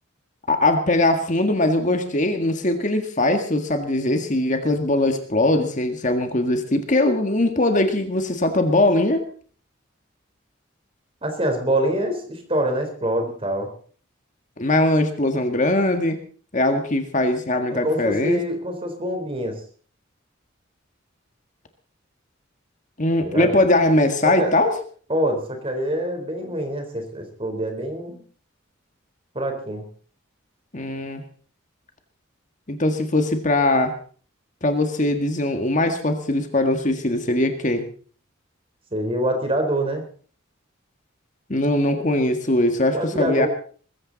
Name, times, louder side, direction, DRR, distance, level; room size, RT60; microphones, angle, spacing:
voice 1, 0.5-9.3 14.6-16.2 16.5-18.4 23.0-24.7 30.7-31.2 32.7-33.9 34.6-37.8 41.5-43.5, left 1 dB, 40° left, 6 dB, 1.8 m, -21 dB
voice 2, 11.2-13.7 17.7-19.6 23.2-23.6 24.2-24.5 25.1-28.2 29.3-29.9 38.9-40.0 42.9-43.5, right 1 dB, 25° right, 5 dB, 4.0 m, -25 dB
21.0 x 15.0 x 4.1 m, 0.44 s
head